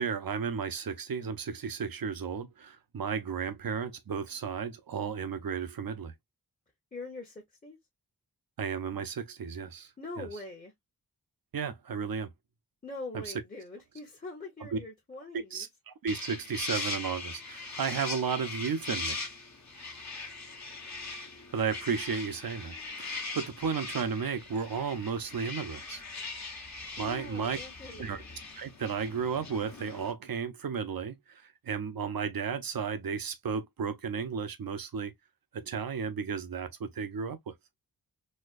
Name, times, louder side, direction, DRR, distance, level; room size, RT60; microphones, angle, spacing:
voice 1, 0.0-6.1 8.6-9.9 10.2-10.3 11.5-12.3 13.1-13.3 14.7-14.8 15.5-19.2 21.5-26.0 27.0-27.6 28.0-28.2 28.6-35.1 35.5-37.5, right 6 dB, 70° right, 0.7 m, -34 dB
voice 2, 6.9-7.8 10.0-10.7 12.8-15.7 27.0-28.2, left 2 dB, 25° left, 1.0 m, -43 dB
sound 1, 16.1-30.1, left 3 dB, 45° left, 1.1 m, -40 dB
4.2 x 2.3 x 2.4 m
cardioid pair, 60°, 37 cm